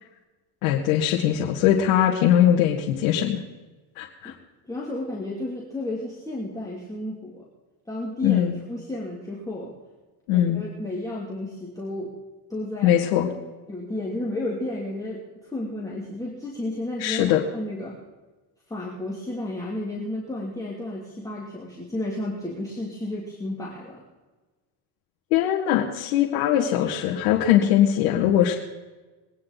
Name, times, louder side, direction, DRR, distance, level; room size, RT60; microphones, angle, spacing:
voice 1, 0.6-3.4 4.0-4.3 8.2-8.5 10.3-10.6 12.8-13.3 17.0-17.4 25.3-28.5, left 11 dB, 85° left, -1 dB, 1.8 m, -21 dB
voice 2, 4.7-7.5 7.9-9.7 10.3-12.1 12.5-13.1 13.7-18.0 18.7-24.0, left 1 dB, 10° left, -4 dB, 2.7 m, -32 dB
22.5 x 9.8 x 4.0 m, 1.2 s
cardioid pair, 125°, 41 cm